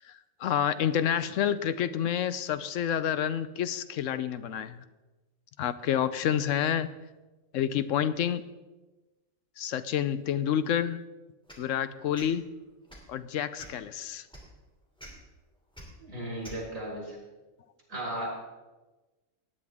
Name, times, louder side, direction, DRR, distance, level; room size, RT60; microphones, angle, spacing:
voice 1, 0.4-4.8 5.6-6.9 7.5-8.4 9.6-11.0 11.6-12.4 13.1-14.3, left 9 dB, 75° left, 13 dB, 0.9 m, -28 dB
sound 1, 11.5-11.7 12.1-12.3 12.8-13.1 13.6-13.8 14.3-14.4 15.0-15.1 15.7-15.8 16.4-16.6, equal, 5° left, 2.7 m, -46 dB
voice 2, 16.0-17.2 17.9-18.3, right 1 dB, 70° right, -3 dB, 5.2 m, -35 dB
17.5 x 10.0 x 3.6 m, 1.2 s
omnidirectional pair, 1.4 m